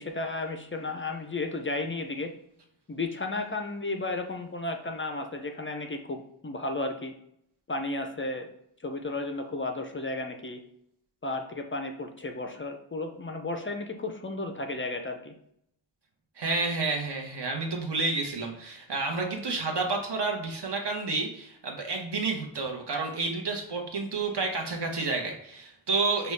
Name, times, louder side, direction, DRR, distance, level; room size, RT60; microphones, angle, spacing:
voice 1, 0.0-2.3 2.9-7.1 7.7-8.5 8.8-10.6 11.2-15.3, left 2 dB, 30° left, 5 dB, 0.3 m, -33 dB
voice 2, 16.4-26.3, right 3 dB, 55° right, 2 dB, 0.9 m, -30 dB
5.1 x 2.3 x 3.2 m, 0.72 s
wide cardioid pair, 115°, 49 cm